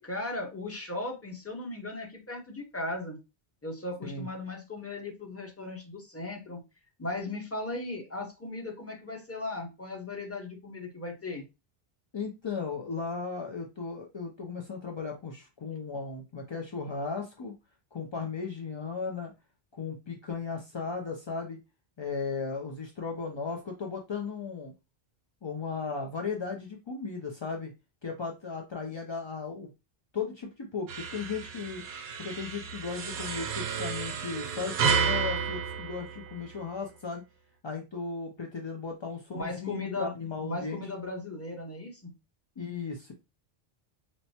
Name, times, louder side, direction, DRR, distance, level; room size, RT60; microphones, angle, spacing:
voice 1, 0.0-3.2 3.6-6.6 7.0-11.4 39.3-40.1 40.4-42.1, left 2 dB, 15° left, 2 dB, 0.7 m, -37 dB
voice 2, 12.1-17.5 17.9-19.3 19.7-21.6 22.0-24.7 25.4-27.7 28.0-29.7 30.1-31.8 32.2-37.2 37.6-40.9 42.6-43.1, left 5 dB, 45° left, 1 dB, 0.3 m, -36 dB
sound 1, 30.9-36.7, right 6 dB, 75° right, 0.8 m, -31 dB
4.5 x 2.1 x 2.7 m, 0.26 s
omnidirectional pair, 1.1 m